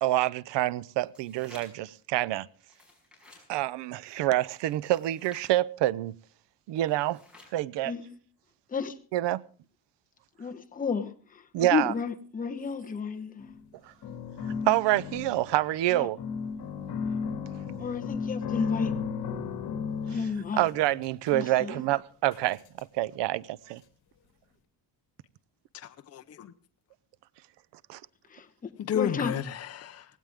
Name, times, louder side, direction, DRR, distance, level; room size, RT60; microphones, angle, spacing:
voice 1, 0.0-2.5 3.5-6.1 6.7-7.2 7.5-7.9 9.1-9.4 11.5-11.9 14.5-16.2 20.6-23.8 27.9-28.0, right 15 dB, 80° right, 0.7 m, -27 dB
sound 1, 1.0-1.9 2.6-3.5 4.6-5.5 6.8-7.6, left 2 dB, ahead, 5.7 m, -54 dB
voice 2, 7.8-8.2 8.7-9.0 10.4-13.5 15.9-16.1 17.8-18.9 20.1-20.6 21.3-21.8 28.3-29.4, left 5 dB, 20° left, 1.1 m, -32 dB
sound 2, 13.4-13.7 14.0-15.7 16.2-21.3 22.3-22.4 22.8-22.9, left 6 dB, 60° left, 2.6 m, -34 dB
voice 3, 25.7-26.5 28.8-30.1, left 9 dB, 35° left, 0.8 m, -32 dB
18.0 x 16.5 x 3.6 m
cardioid pair, 155°, 42 cm